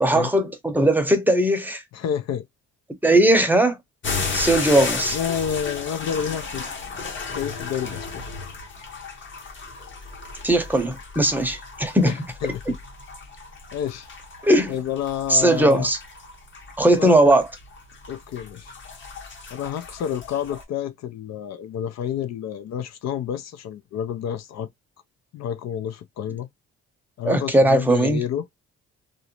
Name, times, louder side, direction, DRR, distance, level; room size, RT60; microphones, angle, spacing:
voice 1, 0.0-1.8 3.0-3.8 4.3-5.2 10.4-12.2 12.7-12.8 14.4-14.7 15.3-16.0 16.8-17.5 27.2-28.2, right 1 dB, 5° right, 0.7 m, -19 dB
voice 2, 1.9-2.4 5.1-6.7 7.3-8.3 12.0-12.1 12.4-12.8 13.7-14.1 14.7-15.9 16.9-17.3 18.1-18.7 19.5-24.7 25.3-26.5 27.2-28.5, left 9 dB, 60° left, 0.5 m, -29 dB
sound 1, 4.0-20.6, left 4 dB, 40° left, 0.9 m, -34 dB
2.6 x 2.0 x 2.8 m
cardioid pair, 90°, 30 cm